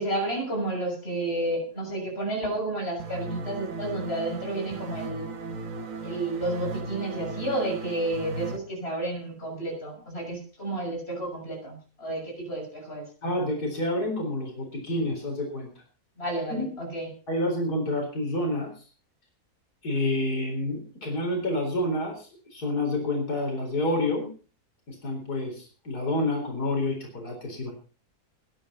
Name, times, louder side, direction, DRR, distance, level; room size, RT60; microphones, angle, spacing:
voice 1, 0.0-5.3 6.0-13.0 16.2-17.1, right 1 dB, 40° left, 0 dB, 7.1 m, -31 dB
sound 1, 3.0-8.6, right 3 dB, 60° right, 1.8 m, -36 dB
voice 2, 13.2-15.7 16.5-16.6 17.3-18.8 19.8-24.3 24.9-27.7, left 1 dB, 90° left, 1 dB, 4.6 m, -28 dB
20.5 x 10.5 x 4.2 m, 0.38 s
omnidirectional pair, 1.6 m